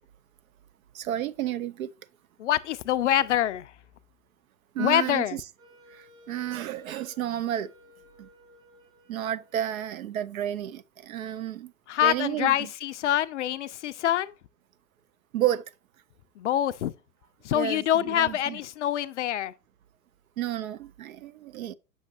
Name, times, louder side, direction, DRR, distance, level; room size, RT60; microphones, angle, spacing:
voice 1, 0.9-1.9 4.7-5.4 5.9-7.7 8.2-8.3 9.1-11.7 12.0-12.5 15.3-15.6 17.5-18.6 20.4-21.7, right 11 dB, 60° right, 0.6 m, -31 dB
voice 2, 2.4-3.7 4.8-5.4 11.9-14.3 16.4-16.9 17.4-19.5, left 11 dB, 50° left, 0.5 m, -25 dB
Wind instrument woodwind instrument, 5.6-10.5, left 2 dB, 80° right, 2.6 m, -57 dB
7.6 x 6.4 x 2.5 m
figure-of-eight pair, 105°, 49 cm